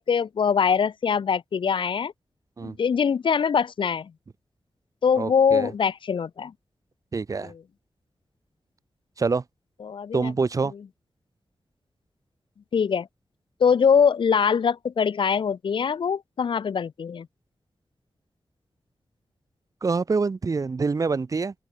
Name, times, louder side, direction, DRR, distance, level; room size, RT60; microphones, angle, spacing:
voice 1, 0.0-2.1 2.6-4.1 5.0-6.5 7.4-7.5 9.8-10.3 12.7-13.1 13.6-17.3, left 6 dB, 80° left, 2.0 m, -23 dB
voice 2, 5.2-5.7 7.1-7.5 9.2-9.4 10.1-10.7 19.8-21.5, right 4 dB, 40° right, 6.2 m, -25 dB
open air
wide cardioid pair, 160°, 8 cm